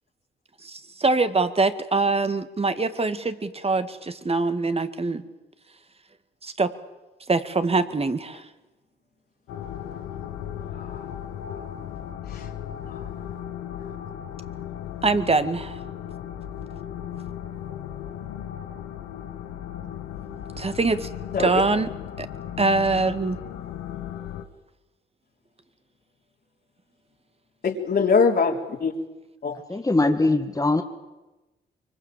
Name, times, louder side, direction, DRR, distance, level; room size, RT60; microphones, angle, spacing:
voice 1, 0.6-5.2 6.4-6.7 7.3-8.4 15.0-15.8 20.6-21.1 21.4-21.9 22.2-22.3 22.6-23.4, right 3 dB, 30° right, 11 dB, 2.2 m, -23 dB
sound 1, 9.5-24.4, left 10 dB, 85° left, 1.4 m, -36 dB
voice 2, 10.7-11.2 12.3-12.5 12.9-13.0 21.3-21.6 27.6-28.9 29.4-29.6, left 5 dB, 50° left, 0 dB, 3.6 m, -23 dB
voice 3, 29.7-30.8, left 2 dB, 15° left, 3 dB, 2.0 m, -21 dB
24.5 x 24.5 x 7.6 m, 1.1 s
supercardioid pair, 60°, 20 cm